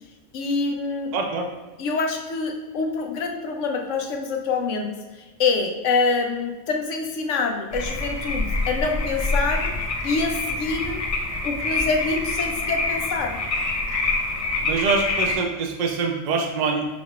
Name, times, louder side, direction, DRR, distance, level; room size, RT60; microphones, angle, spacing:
voice 1, 0.3-1.1 1.8-4.9 5.4-9.7 10.0-11.0 11.4-13.4, left 4 dB, 80° left, 3 dB, 1.0 m, -25 dB
voice 2, 1.1-1.5 14.6-16.9, right 4 dB, 50° right, 3 dB, 0.5 m, -24 dB
sound 1, 7.7-15.4, left 2 dB, 45° left, 0.5 m, -26 dB
6.1 x 3.5 x 2.3 m, 1.2 s
omnidirectional pair, 1.3 m